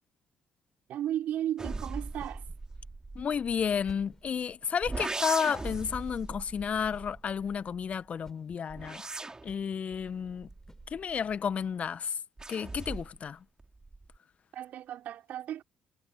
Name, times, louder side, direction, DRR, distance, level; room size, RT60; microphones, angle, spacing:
sound 1, 0.9-11.4, left 2 dB, 15° left, 6.9 m, -59 dB
voice 1, 0.9-2.4 14.5-15.6, right 11 dB, 60° right, 5.3 m, -34 dB
sound 2, 1.6-4.3 4.8-7.9 8.5-11.5 12.4-13.3 13.6-14.2, right 3 dB, 20° right, 5.3 m, -40 dB
voice 2, 3.1-9.0 9.4-10.5 10.9-12.1 12.5-13.4, left 7 dB, 45° left, 1.6 m, -32 dB
figure-of-eight pair, 45°, 3 cm